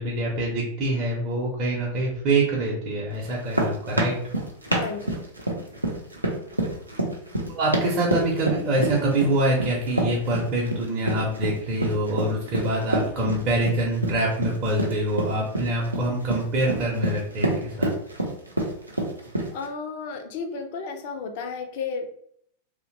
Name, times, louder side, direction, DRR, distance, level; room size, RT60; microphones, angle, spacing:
voice 1, 0.0-4.2 7.5-17.9, right 1 dB, 35° right, -4 dB, 0.6 m, -25 dB
sound 1, 3.3-19.7, right 1 dB, 85° right, 0.5 m, -27 dB
voice 2, 4.7-5.2 19.5-22.1, left 5 dB, 50° left, 5 dB, 0.4 m, -33 dB
2.7 x 2.1 x 2.6 m, 0.67 s
figure-of-eight pair, 90°, 0 cm